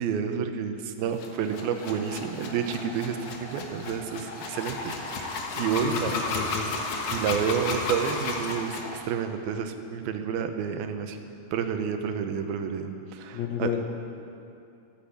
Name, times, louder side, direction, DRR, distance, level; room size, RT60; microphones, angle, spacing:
voice 1, 0.0-6.1 7.1-11.2 11.5-13.7, right 7 dB, 90° right, 7 dB, 2.8 m, -30 dB
sound 1, 1.1-9.0, left 3 dB, 55° left, 2.1 m, -33 dB
voice 2, 5.8-6.7 13.3-13.8, left 8 dB, 70° left, 2 dB, 1.7 m, -31 dB
14.5 x 10.5 x 8.5 m, 2.6 s
omnidirectional pair, 4.2 m